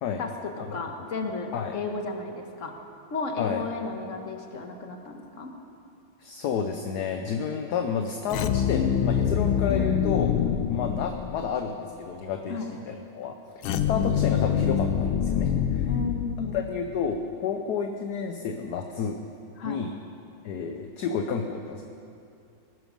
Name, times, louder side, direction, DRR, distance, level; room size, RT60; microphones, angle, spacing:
voice 1, 0.2-2.7 3.1-5.5 12.5-12.7 15.8-16.6 19.6-19.9, left 3 dB, 40° left, 4 dB, 1.5 m, -33 dB
voice 2, 6.2-10.3 10.7-13.4 13.9-15.9 16.5-19.2 19.6-19.9 20.4-21.8, left 6 dB, 65° left, 5 dB, 1.1 m, -30 dB
sound 1, 8.3-11.6 13.6-16.9, left 8 dB, 85° left, 1.5 m, -25 dB
19.5 x 12.5 x 5.2 m, 2.6 s
omnidirectional pair, 2.2 m